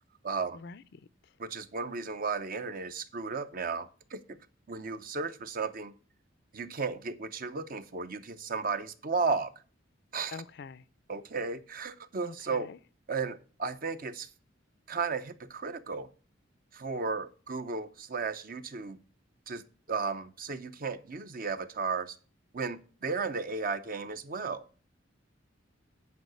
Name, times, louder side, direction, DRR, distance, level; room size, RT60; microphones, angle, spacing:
voice 1, 0.2-0.6 1.4-4.2 4.7-5.9 6.5-9.5 10.1-10.4 11.1-12.7 13.1-14.3 14.9-16.1 16.7-19.0 19.5-19.6 19.9-22.2 22.5-24.6, right 4 dB, 45° right, 0.7 m, -34 dB
voice 2, 10.3-10.8 12.2-12.8, left 4 dB, 60° left, 0.5 m, -44 dB
9.3 x 4.8 x 7.8 m
head